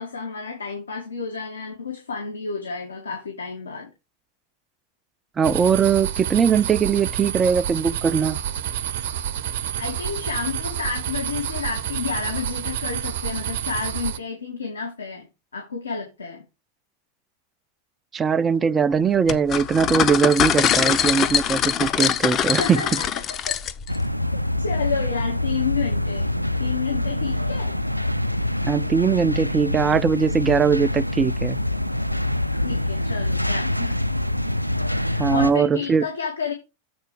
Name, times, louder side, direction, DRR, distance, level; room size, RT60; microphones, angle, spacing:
voice 1, 0.0-3.9 9.8-15.3 15.5-16.4 22.6-23.5 24.3-26.3 26.6-27.8 32.6-34.0 34.9-36.5, left 5 dB, 75° left, 1.8 m, -30 dB
voice 2, 5.4-8.4 18.1-22.8 28.6-31.6 35.2-36.0, right 6 dB, 20° right, 0.5 m, -20 dB
sound 1, 5.4-14.2, right 10 dB, 55° right, 0.8 m, -29 dB
sound 2, 19.3-24.0, left 9 dB, 30° left, 0.8 m, -23 dB
sound 3, 23.9-35.5, left 1 dB, 90° right, 0.4 m, -25 dB
8.0 x 4.4 x 4.6 m
figure-of-eight pair, 90°, 0 cm